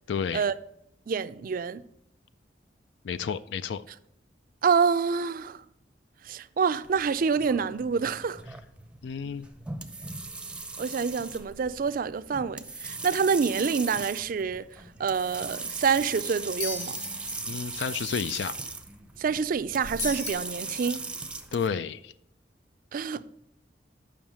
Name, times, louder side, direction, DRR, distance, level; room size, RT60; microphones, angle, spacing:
voice 1, 0.1-0.5 3.0-3.8 9.0-9.5 17.4-18.5 21.5-22.1, left 6 dB, 75° left, 0.3 m, -31 dB
voice 2, 1.1-1.8 4.6-5.6 6.2-8.4 10.8-17.0 19.2-21.0 22.9-23.3, right 5 dB, 50° right, 0.4 m, -27 dB
sound 1, 6.8-21.7, right 3 dB, 5° right, 0.6 m, -39 dB
sound 2, 16.6-17.4 20.0-20.3, left 4 dB, 40° left, 2.4 m, -34 dB
7.2 x 5.6 x 6.0 m
head